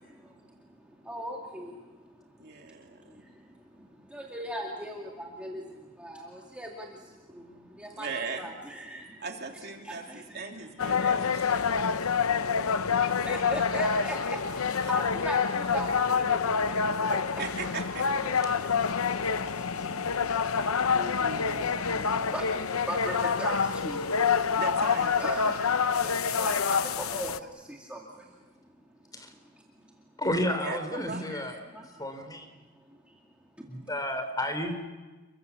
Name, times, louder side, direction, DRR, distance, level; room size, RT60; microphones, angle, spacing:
voice 1, 0.0-8.1 8.3-9.2 9.8-17.2 18.2-24.6 25.2-30.0 31.0-32.0 32.7-33.2 33.6-33.7, right 1 dB, 5° right, -2 dB, 2.3 m, -41 dB
voice 2, 2.4-3.2 8.0-8.5 9.2-11.5 17.4-18.6 20.9-21.6 24.6-25.2 30.5-31.2, right 4 dB, 50° right, 2 dB, 3.0 m, -39 dB
sound 1, 10.8-27.4, left 6 dB, 85° left, 0.8 m, -27 dB
voice 3, 30.2-31.6 32.0-32.5 33.7-34.7, left 1 dB, 15° left, 7 dB, 3.5 m, -31 dB
29.5 x 23.5 x 7.1 m, 1.2 s
head